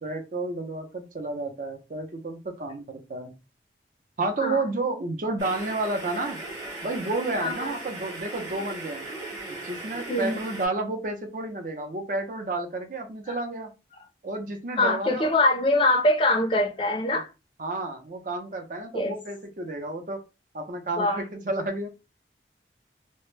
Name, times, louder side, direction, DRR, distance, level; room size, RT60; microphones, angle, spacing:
voice 1, 0.0-3.3 4.2-6.4 6.8-9.1 9.5-13.7 14.2-15.3 17.6-20.2 20.5-21.9, right 2 dB, 50° right, 0.5 m, -31 dB
sound 1, 5.4-10.7, right 2 dB, 20° right, 0.9 m, -38 dB
voice 2, 7.4-7.8 10.1-10.4 14.8-17.3 18.9-19.2 21.0-21.2, left 2 dB, 30° left, 0.4 m, -23 dB
2.1 x 2.0 x 3.1 m
head